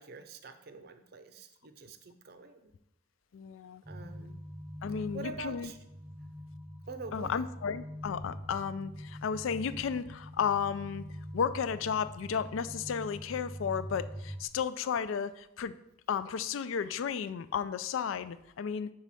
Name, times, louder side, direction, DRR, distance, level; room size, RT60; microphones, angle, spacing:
voice 1, 0.0-2.7 3.9-4.4 5.1-5.8 6.9-7.5, right 3 dB, 50° right, 8 dB, 0.6 m, -45 dB
voice 2, 3.3-3.8 4.8-5.7 7.1-11.0 11.3-15.8 16.1-18.9, left 7 dB, 75° left, 14 dB, 0.4 m, -33 dB
sound 1, 3.8-14.5, equal, 10° right, 0.3 m, -44 dB
5.0 x 4.8 x 5.6 m, 0.82 s
head